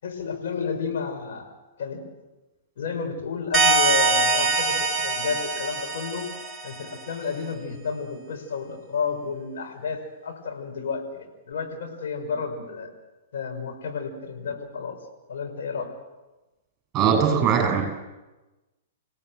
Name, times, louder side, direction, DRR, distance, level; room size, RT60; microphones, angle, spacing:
voice 1, 0.0-1.5 1.8-2.0 2.8-6.3 6.6-12.9 13.3-15.0 15.3-15.9, left 5 dB, 55° left, 2 dB, 5.6 m, -31 dB
sound 1, 3.5-6.9, right 3 dB, 5° right, 4.6 m, -23 dB
voice 2, 16.9-17.8, right 7 dB, 20° right, 4 dB, 7.8 m, -20 dB
28.5 x 17.0 x 7.8 m, 1.1 s
figure-of-eight pair, 110°, 0 cm